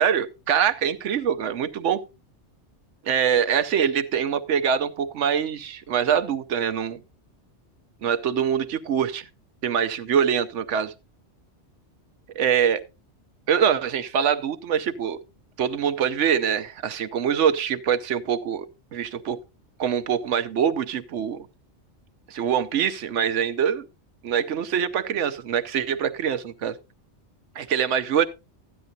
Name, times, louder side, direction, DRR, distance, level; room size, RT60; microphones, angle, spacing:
voice 1, 0.0-2.0 3.0-7.0 8.0-9.2 9.6-10.9 12.3-12.8 13.5-15.2 15.6-18.7 18.9-19.4 19.8-21.5 22.3-23.9 24.2-26.8 27.5-28.3, right 8 dB, 85° right, 1.1 m, -24 dB
13.5 x 9.9 x 2.7 m
omnidirectional pair, 1.2 m